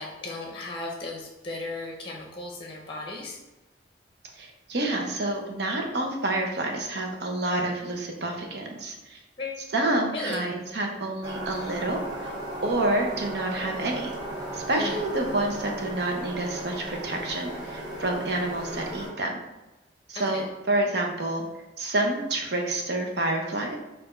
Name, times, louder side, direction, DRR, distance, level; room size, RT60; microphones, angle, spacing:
voice 1, 0.0-3.4 9.4-9.6 10.1-10.4 14.8-15.0 20.1-20.5, left 2 dB, 30° left, 0 dB, 0.7 m, -36 dB
voice 2, 4.4-9.2 9.7-12.3 12.6-14.1 14.5-19.4 20.1-21.4 21.8-23.8, right 2 dB, 65° right, 2 dB, 0.8 m, -28 dB
sound 1, 11.2-19.1, right 1 dB, 25° right, 1.3 m, -36 dB
4.4 x 2.6 x 4.4 m, 1.0 s
head